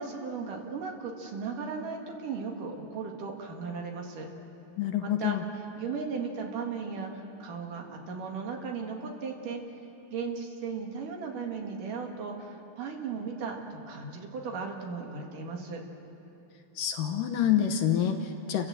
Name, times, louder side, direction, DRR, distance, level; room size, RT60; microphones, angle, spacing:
voice 1, 0.0-4.3 5.0-9.6 10.1-15.8, right 5 dB, 65° right, 1 dB, 3.4 m, -36 dB
voice 2, 4.8-5.4 16.8-18.7, left 9 dB, 70° left, 6 dB, 2.4 m, -27 dB
30.0 x 16.0 x 7.7 m, 2.9 s
omnidirectional pair, 4.3 m